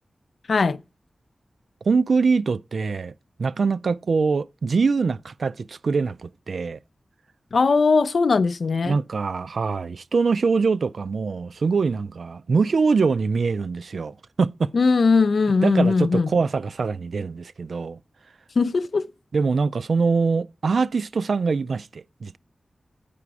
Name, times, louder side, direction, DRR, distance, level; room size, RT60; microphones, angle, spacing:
voice 1, 1.9-3.1 3.4-6.8 8.8-14.8 15.6-18.0 19.3-22.4, right 4 dB, 75° right, 0.4 m, -23 dB
voice 2, 7.5-8.9 14.7-16.3 18.6-19.1, left 4 dB, 70° left, 0.4 m, -19 dB
8.4 x 5.0 x 4.7 m
wide cardioid pair, 85°, 0 cm